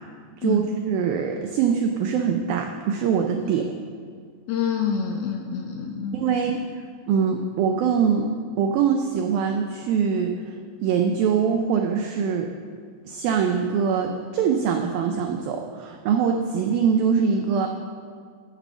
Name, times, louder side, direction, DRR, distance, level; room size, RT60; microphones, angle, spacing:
voice 1, 0.4-3.6 6.1-6.6 7.1-10.5 10.8-12.5 13.1-17.7, right 6 dB, 90° right, 4 dB, 2.0 m, -23 dB
voice 2, 4.5-6.4, left 7 dB, 80° left, 3 dB, 2.3 m, -27 dB
13.5 x 7.8 x 6.1 m, 2.2 s
omnidirectional pair, 5.1 m